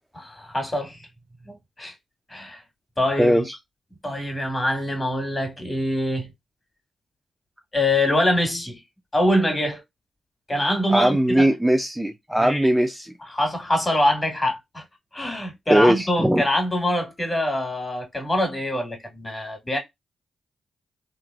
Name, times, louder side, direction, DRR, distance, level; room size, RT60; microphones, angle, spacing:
voice 1, 0.1-1.1 1.5-1.9 2.3-2.6 3.0-3.4 4.0-6.3 7.7-8.8 9.1-9.8 10.5-11.5 12.4-12.7 13.2-14.8 15.1-19.8, left 1 dB, 25° left, 1.5 m, -24 dB
voice 2, 3.2-3.5 10.9-13.1 15.7-16.4, right 1 dB, 10° right, 0.4 m, -19 dB
3.1 x 2.0 x 2.3 m
hypercardioid pair, 40°, 0 cm